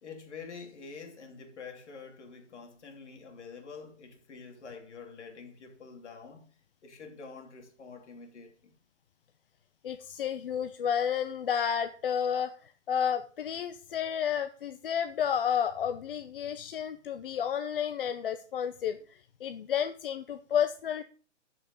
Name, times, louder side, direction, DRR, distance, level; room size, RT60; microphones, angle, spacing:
voice 1, 0.0-6.5 6.8-8.7, left 5 dB, 65° left, 3.1 m, -47 dB
voice 2, 9.8-21.0, left 8 dB, 45° left, 0.7 m, -31 dB
13.0 x 5.5 x 5.2 m
hypercardioid pair, 160°, 37 cm